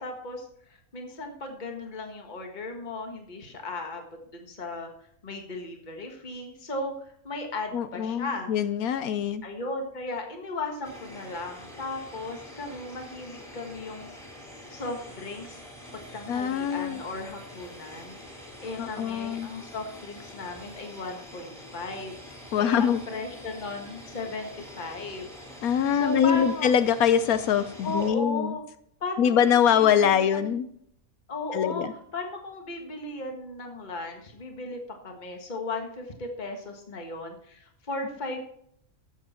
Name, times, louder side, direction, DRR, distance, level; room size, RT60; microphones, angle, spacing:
voice 1, 0.0-4.0 4.3-4.9 5.2-8.5 9.4-14.1 14.7-15.6 15.9-18.2 18.6-22.2 22.6-25.3 25.9-26.7 27.8-28.6 29.0-30.5 31.3-38.4, left 2 dB, 30° left, 3 dB, 1.7 m, -36 dB
voice 2, 7.7-9.4 16.3-17.0 18.8-19.5 22.5-23.0 25.6-28.5 29.2-30.7 31.5-31.9, left 8 dB, 80° left, 12 dB, 1.1 m, -23 dB
sound 1, 10.8-28.1, left 1 dB, ahead, 3.8 m, -45 dB
13.0 x 7.9 x 4.4 m, 0.68 s
omnidirectional pair, 1.5 m